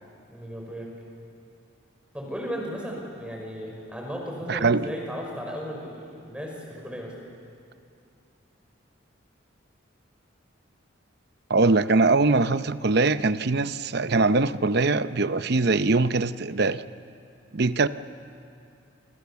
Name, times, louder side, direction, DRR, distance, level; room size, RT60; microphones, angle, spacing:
voice 1, 0.3-0.9 2.1-7.1, equal, 5° right, 5.4 m, -35 dB
voice 2, 4.5-4.9 11.5-16.8 17.5-17.9, right 3 dB, 55° right, 0.7 m, -22 dB
28.5 x 27.0 x 7.1 m
head